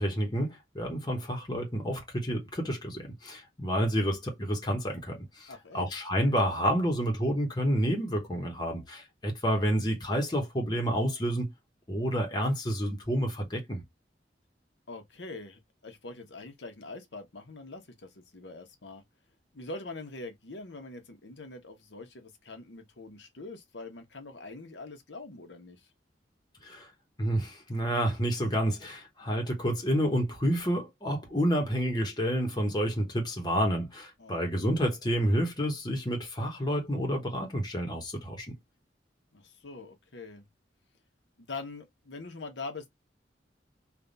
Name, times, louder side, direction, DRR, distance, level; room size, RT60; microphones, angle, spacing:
voice 1, 0.0-11.5 11.9-13.8 26.6-26.9 27.2-38.5, equal, 25° left, 1.2 m, -29 dB
voice 2, 5.5-5.9 14.9-19.0 19.5-25.9 34.2-34.4 39.3-40.4 41.4-42.9, left 3 dB, 75° left, 1.1 m, -43 dB
3.4 x 2.6 x 3.9 m
head